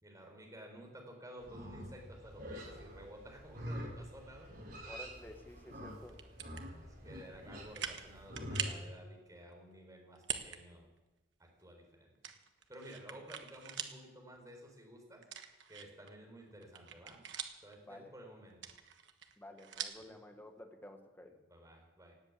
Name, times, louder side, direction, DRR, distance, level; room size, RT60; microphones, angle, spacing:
voice 1, 0.0-4.5 6.7-10.9 11.4-12.1 12.7-15.2 15.7-17.2 17.6-18.7 20.0-20.1 21.5-22.1, right 1 dB, 20° right, 1 dB, 4.1 m, -53 dB
Livestock farm animals working animals, 1.4-8.7, equal, 55° right, 5.1 m, -46 dB
voice 2, 4.8-6.3 17.9-18.1 19.4-21.3, left 1 dB, 10° left, 4 dB, 1.5 m, -52 dB
sound 1, 6.1-6.6 7.2-7.3 7.7-8.1 8.4-8.8 10.2-10.6 11.0-11.1 12.2-14.0 14.4-14.5 15.2-16.1 16.5-17.7 18.5-20.1, right 9 dB, 70° right, 1.3 m, -42 dB
18.0 x 8.2 x 8.5 m, 1.1 s
head